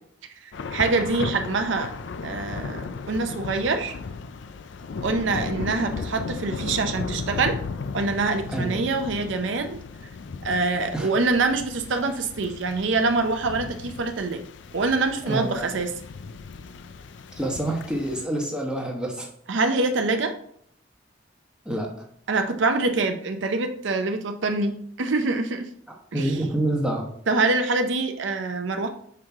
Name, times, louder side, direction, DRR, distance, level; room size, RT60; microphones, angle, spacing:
voice 1, 0.4-1.9 2.2-3.9 5.0-7.6 7.9-9.8 10.4-14.4 14.7-15.9 19.5-20.3 22.3-25.7 26.1-26.3 27.3-28.9, right 3 dB, 70° right, 6 dB, 0.6 m, -25 dB
Thunder / Rain, 0.5-18.2, left 4 dB, 65° left, 0.4 m, -36 dB
voice 2, 15.2-15.8 17.4-19.3 21.6-22.0 26.1-27.1, right 1 dB, 5° right, -1 dB, 1.1 m, -27 dB
5.8 x 4.7 x 3.6 m, 0.65 s
head